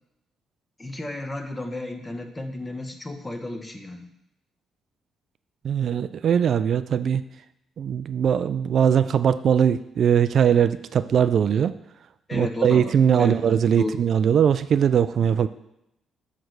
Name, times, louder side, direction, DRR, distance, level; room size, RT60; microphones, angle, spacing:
voice 1, 0.8-4.1 12.3-14.0, left 2 dB, 15° left, 5 dB, 1.1 m, -33 dB
voice 2, 5.6-7.2 7.8-11.7 12.3-15.5, right 8 dB, 60° right, 13 dB, 0.3 m, -20 dB
8.8 x 3.3 x 6.4 m, 0.83 s
cardioid pair, 90°, 0 cm